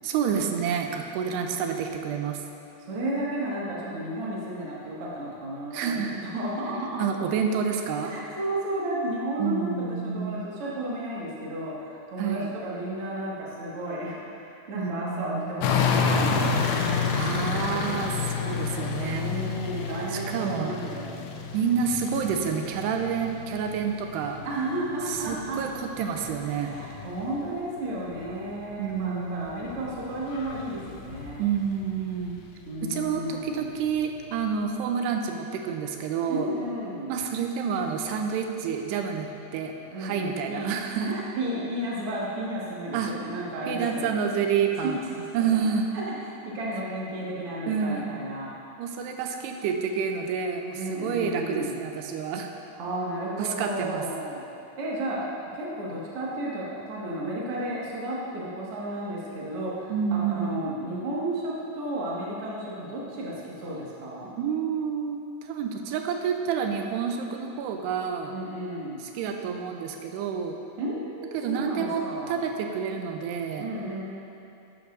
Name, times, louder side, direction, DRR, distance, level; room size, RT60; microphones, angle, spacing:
voice 1, 0.0-2.4 5.7-6.2 7.0-8.1 9.4-10.5 12.2-12.5 14.7-15.5 17.1-19.3 20.1-20.8 21.5-24.4 25.1-25.7 26.0-26.8 28.8-29.6 31.4-32.5 32.8-36.5 37.1-41.2 42.9-43.1 43.7-45.0 45.3-46.0 47.7-48.3 48.8-52.5 53.4-54.1 59.9-60.6 64.4-68.3 69.0-70.6 71.3-72.0 72.3-73.7, right 7 dB, 90° right, 4 dB, 2.7 m, -29 dB
voice 2, 1.1-1.6 2.8-7.0 8.0-16.6 19.1-21.2 24.4-25.6 26.5-31.4 32.6-33.7 36.3-37.2 39.9-44.2 44.8-45.5 45.9-48.5 50.8-51.8 52.7-54.4 54.8-55.2 55.5-64.3 68.3-69.0 70.8-72.4 73.6-74.0, right 1 dB, 45° right, -6 dB, 2.1 m, -33 dB
sound 1, 15.6-27.6 27.9-32.8 33.4-33.5, left 5 dB, 80° left, 2.3 m, -30 dB
13.0 x 12.0 x 2.6 m, 2.9 s
omnidirectional pair, 4.8 m